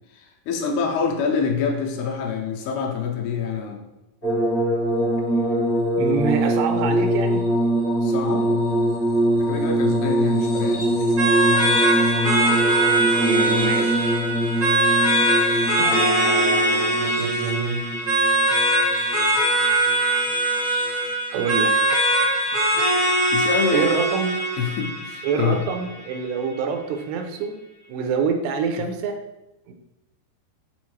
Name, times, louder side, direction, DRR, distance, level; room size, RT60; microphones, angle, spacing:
voice 1, 0.1-3.8 8.0-8.6 9.4-10.9 23.3-24.0 24.6-25.6, left 6 dB, 80° left, 1 dB, 2.7 m, -26 dB
sound 1, 4.2-19.5 20.3-21.0 22.5-22.6, right 1 dB, 55° left, 1.1 m, -23 dB
voice 2, 6.0-7.4 12.4-12.7 13.1-14.2 15.8-17.9 21.3-21.7 23.7-24.3 25.2-27.6 27.9-29.2 29.7-29.8, right 6 dB, 85° right, 5 dB, 2.7 m, -26 dB
sound 2, 11.2-26.1, right 1 dB, 65° right, 0.8 m, -21 dB
7.1 x 4.2 x 3.2 m, 0.95 s
omnidirectional pair, 4.7 m